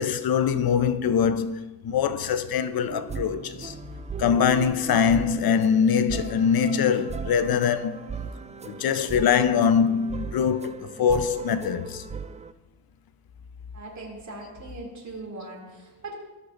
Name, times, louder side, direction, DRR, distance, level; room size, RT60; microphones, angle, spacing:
voice 1, 0.0-3.7 4.2-8.0 8.6-12.0, left 7 dB, 60° left, 0.7 m, -23 dB
sound 1, 2.9-12.5, right 5 dB, 20° right, 0.3 m, -38 dB
voice 2, 13.7-16.2, right 2 dB, 45° right, 2.8 m, -40 dB
14.0 x 6.5 x 2.6 m
supercardioid pair, 55°, 41 cm